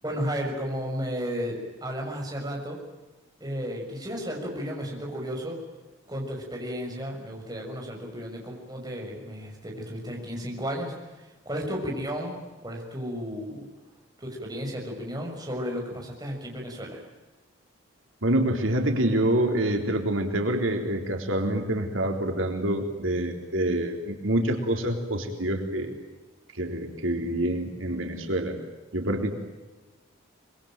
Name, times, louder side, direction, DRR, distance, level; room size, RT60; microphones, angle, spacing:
voice 1, 0.0-2.8 3.4-5.6 6.1-10.9 11.4-12.4 12.6-13.6 14.2-17.0, equal, 20° right, 0 dB, 6.5 m, -33 dB
voice 2, 18.2-25.9 26.6-28.6 28.9-29.3, right 1 dB, 90° right, 4 dB, 3.9 m, -26 dB
25.5 x 22.5 x 9.1 m, 1.2 s
head